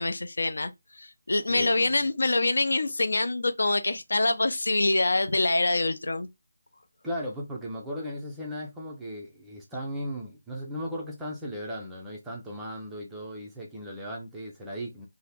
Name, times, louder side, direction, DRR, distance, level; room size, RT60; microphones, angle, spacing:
voice 1, 0.0-6.3, left 2 dB, 75° left, 0.5 m, -25 dB
voice 2, 1.5-2.0 7.0-15.1, equal, 5° right, 0.4 m, -37 dB
2.7 x 2.1 x 3.3 m
figure-of-eight pair, 175°, 0 cm